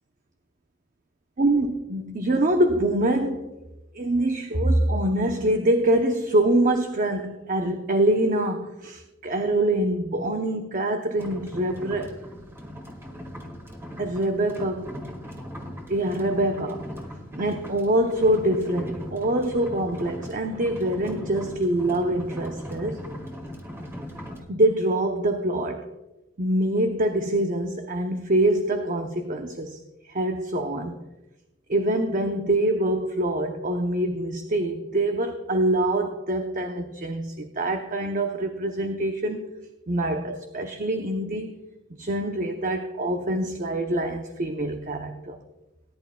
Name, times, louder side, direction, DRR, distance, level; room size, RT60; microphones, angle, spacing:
voice 1, 1.4-3.6 3.9-12.2 14.0-15.1 15.9-17.0 17.3-23.0 24.5-25.9 26.4-29.8 30.1-31.0 31.7-39.5 39.9-41.6 41.9-45.4, right 1 dB, 45° right, 0.8 m, -25 dB
sound 1, 11.2-24.4, equal, 15° right, 1.8 m, -39 dB
18.5 x 11.0 x 2.3 m
head